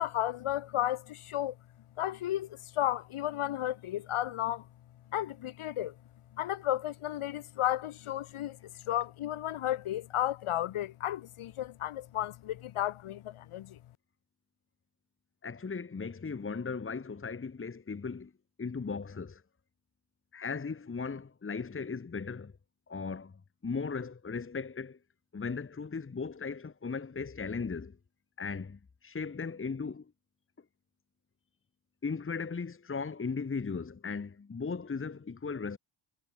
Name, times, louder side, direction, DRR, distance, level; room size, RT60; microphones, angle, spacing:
voice 1, 0.0-1.5 2.0-4.6 5.1-5.9 6.4-8.6 8.9-13.8, left 12 dB, 85° left, 1.7 m, -33 dB
voice 2, 15.4-18.3 18.6-19.4 20.3-22.5 22.9-25.0 25.3-28.0 28.4-30.1 32.0-35.8, left 5 dB, 25° left, 1.6 m, -37 dB
cardioid pair, 125°, 49 cm